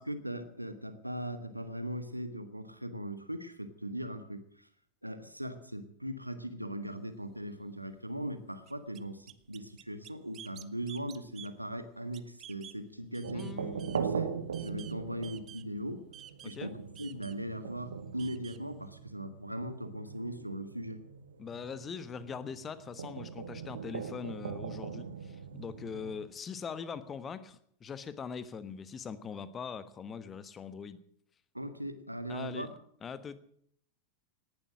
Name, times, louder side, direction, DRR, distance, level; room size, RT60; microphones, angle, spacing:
voice 1, 0.0-4.7 5.0-13.5 14.0-16.1 16.4-21.0 31.5-32.7, equal, 90° right, 10 dB, 1.5 m, -39 dB
sound 1, 6.9-7.0 7.4-7.5 7.9-8.0 8.7-12.8 13.1-14.9 15.2-15.8 16.1-18.7, right 11 dB, 30° right, 1.0 m, -51 dB
sound 2, 13.2-26.2, right 6 dB, 70° right, 1.6 m, -41 dB
voice 2, 13.3-14.1 16.5-16.7 21.4-31.0 32.3-32.7 33.0-33.4, left 6 dB, 20° left, 14 dB, 1.3 m, -42 dB
18.5 x 11.5 x 6.3 m, 0.65 s
figure-of-eight pair, 90°, 0 cm